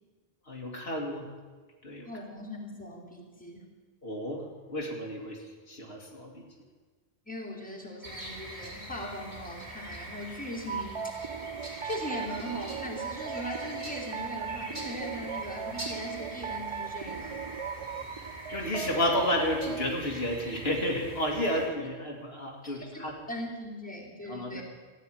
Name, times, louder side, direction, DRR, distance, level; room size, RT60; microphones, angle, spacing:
voice 1, 0.5-1.3 1.8-2.1 4.0-5.4 5.7-6.4 18.5-23.2 24.3-24.6, left 1 dB, 65° left, 0 dB, 2.4 m, -31 dB
voice 2, 2.1-3.6 7.3-11.1 11.8-17.4 21.5-21.6 22.6-24.6, equal, 5° left, -2 dB, 2.7 m, -40 dB
sound 1, 8.0-21.7, right 1 dB, 80° right, 3.8 m, -43 dB
sound 2, 10.7-19.9, right 7 dB, 55° right, 0.3 m, -38 dB
14.5 x 9.6 x 9.0 m, 1.4 s
omnidirectional pair, 1.1 m